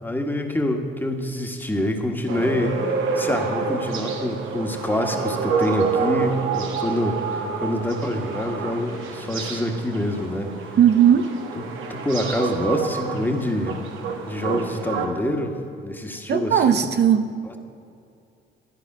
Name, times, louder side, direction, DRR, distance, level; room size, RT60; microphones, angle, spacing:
voice 1, 0.0-10.5 11.9-13.9 14.3-15.6 15.8-16.9 17.4-17.6, left 1 dB, 10° left, 3 dB, 1.6 m, -26 dB
sound 1, 2.3-15.1, right 5 dB, 85° right, 1.4 m, -28 dB
voice 2, 10.8-11.3 16.3-17.2, right 9 dB, 60° right, 8 dB, 0.7 m, -17 dB
13.0 x 10.0 x 6.1 m, 2.5 s
cardioid pair, 90°, 20 cm